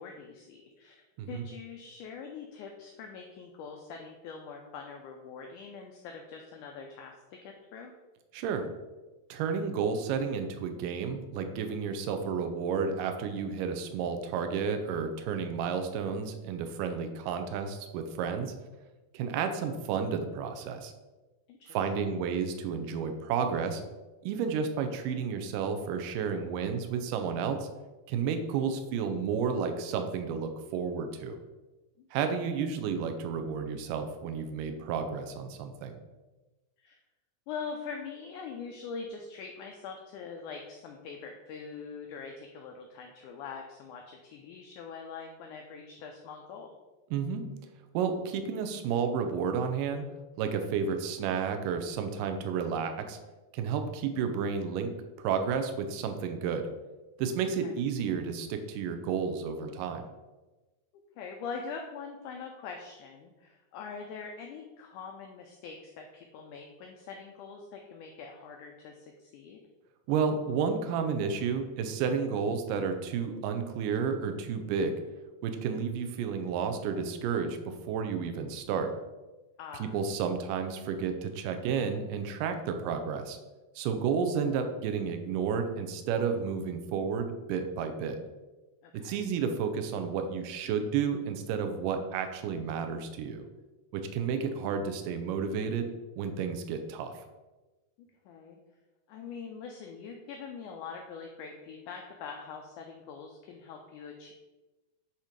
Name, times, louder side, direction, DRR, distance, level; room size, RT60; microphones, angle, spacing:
voice 1, 0.0-7.9 21.5-21.8 32.0-32.3 36.8-37.0 37.5-46.8 57.6-57.7 61.2-69.6 79.6-79.9 88.8-89.2 98.0-98.6 99.1-104.3, left 5 dB, 85° left, 3 dB, 1.8 m, -43 dB
voice 2, 8.3-8.7 9.3-18.5 19.1-20.9 21.7-23.8 24.2-27.7 28.1-31.4 32.1-36.0 47.1-47.5 47.9-50.1 50.4-53.2 53.5-56.7 57.2-60.1 70.1-75.0 75.4-78.9 79.8-83.4 83.8-88.2 89.0-93.4 93.9-95.9 96.2-97.1, right 6 dB, 75° right, 7 dB, 2.1 m, -31 dB
8.4 x 3.0 x 5.0 m, 1.1 s
omnidirectional pair, 4.3 m